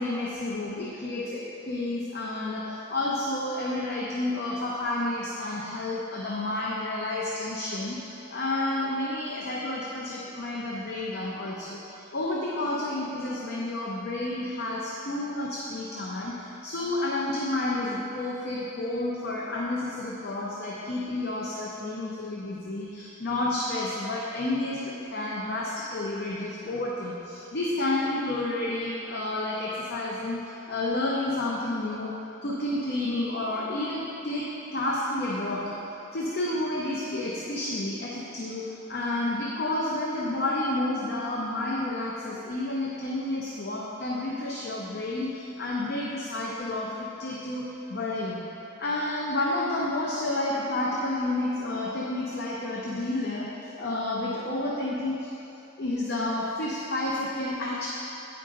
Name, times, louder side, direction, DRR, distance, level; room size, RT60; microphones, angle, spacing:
voice 1, 0.0-35.8 36.1-48.4 48.8-55.3 55.8-57.9, left 2 dB, 50° left, -3 dB, 0.6 m, -30 dB
8.8 x 5.3 x 3.7 m, 2.9 s
head